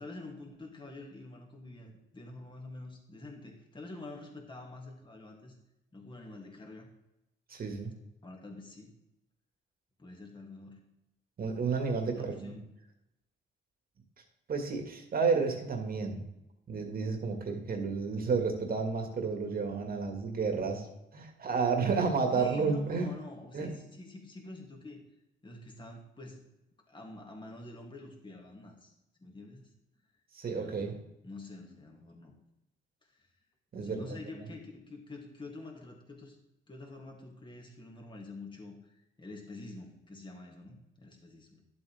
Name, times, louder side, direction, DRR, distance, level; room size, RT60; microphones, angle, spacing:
voice 1, 0.0-5.5 5.9-6.9 8.2-8.9 10.0-10.8 12.1-12.7 22.3-25.0 25.4-26.4 26.9-28.9 29.2-29.6 30.4-32.3 33.1-33.3 33.8-36.4 36.7-38.9 39.2-41.6, left 2 dB, 25° left, 1 dB, 2.5 m, -47 dB
voice 2, 7.5-7.9 11.4-12.6 14.5-16.2 16.7-20.9 21.1-23.1 23.5-23.7 30.3-30.9 33.7-34.5, right 5 dB, 50° right, 4 dB, 2.0 m, -31 dB
11.5 x 7.8 x 3.6 m, 0.88 s
cardioid pair, 90°, 20 cm